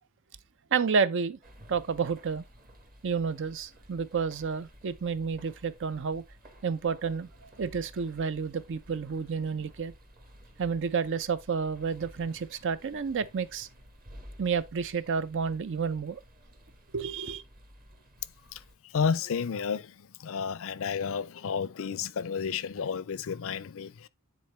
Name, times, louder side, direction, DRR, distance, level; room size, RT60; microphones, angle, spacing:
voice 1, 0.7-1.4 1.7-2.4 3.0-6.2 6.6-9.9 10.6-13.7 14.4-16.2 16.9-17.4, right 5 dB, 55° right, 0.5 m, -30 dB
sound 1, 1.4-18.7, equal, 40° right, 1.7 m, -54 dB
voice 2, 18.5-24.1, left 6 dB, 60° left, 0.5 m, -32 dB
9.5 x 4.2 x 3.2 m
head